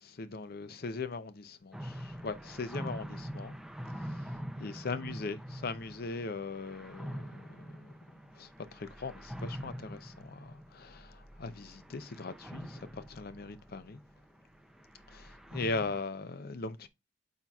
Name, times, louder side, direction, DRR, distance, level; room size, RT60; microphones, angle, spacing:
voice 1, 0.0-3.5 4.0-4.3 4.6-7.9 8.4-14.0 15.1-16.9, left 3 dB, 50° left, 0.5 m, -40 dB
sound 1, 1.7-16.0, equal, ahead, 0.4 m, -44 dB
9.0 x 5.6 x 2.3 m
head